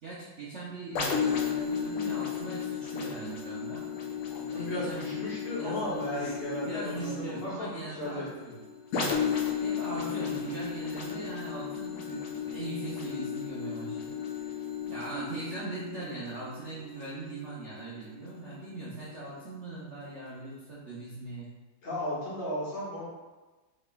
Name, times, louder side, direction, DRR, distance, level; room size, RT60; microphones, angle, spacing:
voice 1, 0.0-3.8 4.5-6.3 6.6-8.6 9.6-14.6 14.9-21.5, right 3 dB, 85° right, -7 dB, 0.6 m, -40 dB
sound 1, 0.9-18.5 19.0-19.1, left 6 dB, 80° left, 1.7 m, -34 dB
voice 2, 4.3-7.1 7.4-8.3 21.8-23.1, left 1 dB, 55° left, -8 dB, 2.0 m, -35 dB
6.2 x 3.2 x 2.3 m, 1.2 s
omnidirectional pair, 2.3 m